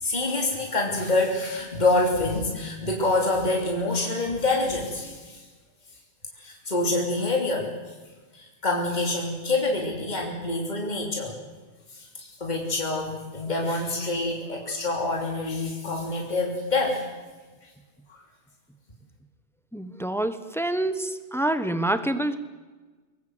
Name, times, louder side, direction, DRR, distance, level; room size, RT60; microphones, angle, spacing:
voice 1, 0.0-5.4 6.4-7.7 8.3-11.3 11.9-17.0 18.1-18.2, left 2 dB, 40° left, 0 dB, 3.3 m, -26 dB
voice 2, 19.7-22.4, right 1 dB, ahead, 10 dB, 1.2 m, -27 dB
24.0 x 20.5 x 8.1 m, 1.3 s
omnidirectional pair, 1.2 m